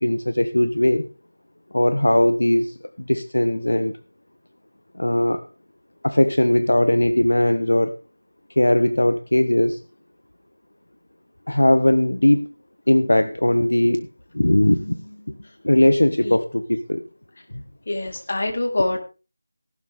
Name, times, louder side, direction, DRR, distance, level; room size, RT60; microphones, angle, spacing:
voice 1, 0.0-1.1 1.7-4.0 4.9-5.4 6.0-8.0 8.6-9.8 11.5-12.5 12.9-14.1 14.3-15.4 15.6-17.0 17.5-17.6, left 1 dB, 85° left, 10 dB, 1.1 m, -19 dB
voice 2, 17.9-19.0, left 2 dB, 55° left, 3 dB, 3.9 m, -24 dB
16.0 x 12.5 x 3.6 m, 0.34 s
figure-of-eight pair, 170°, 0 cm